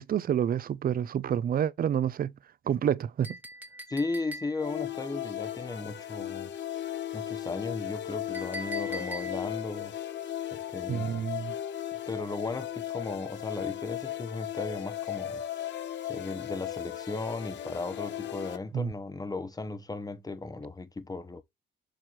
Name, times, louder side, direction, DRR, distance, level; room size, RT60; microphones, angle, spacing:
voice 1, 0.0-2.3 2.7-3.4 10.9-11.5 18.7-18.9, right 9 dB, 50° right, 0.5 m, -28 dB
Chink clink, 3.2-4.8 8.3-9.6, right 1 dB, 10° right, 1.2 m, -41 dB
voice 2, 3.9-6.5 7.1-9.9 10.5-11.3 12.1-15.4 16.1-21.4, left 3 dB, 20° left, 0.9 m, -36 dB
sound 1, 4.6-18.6, left 12 dB, 65° left, 0.9 m, -36 dB
6.8 x 3.0 x 5.6 m
cardioid pair, 90°, 20 cm